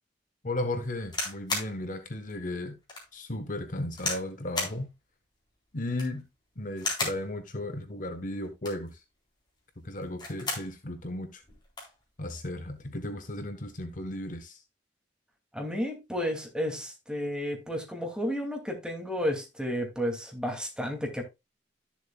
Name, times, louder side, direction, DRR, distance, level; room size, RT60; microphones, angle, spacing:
voice 1, 0.4-2.8 3.1-4.9 5.7-6.3 6.6-9.0 9.8-11.4 12.2-14.6, left 1 dB, 45° left, 1.1 m, -35 dB
sound 1, 1.0-1.7 2.3-2.4 2.9-3.1 4.0-4.3 4.5-4.8 5.8-6.2 6.8-7.2 8.4-8.9 10.0-10.7 11.1-11.2 11.4-11.9 12.8-13.0, left 2 dB, 25° left, 3.8 m, -33 dB
voice 2, 15.5-21.2, equal, 5° right, 2.4 m, -32 dB
13.0 x 7.2 x 2.3 m
head